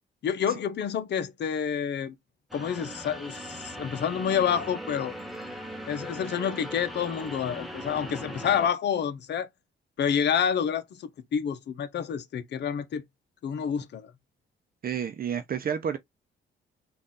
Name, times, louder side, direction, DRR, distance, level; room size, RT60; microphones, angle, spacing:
voice 1, 0.2-2.1 2.5-5.1 5.9-9.5 10.0-13.0 13.4-14.1, left 8 dB, 60° left, 0.9 m, -28 dB
sound 1, 2.5-8.7, equal, ahead, 1.1 m, -39 dB
voice 2, 14.8-16.0, right 8 dB, 50° right, 0.7 m, -30 dB
3.9 x 2.6 x 3.7 m
cardioid pair, 90°, 20 cm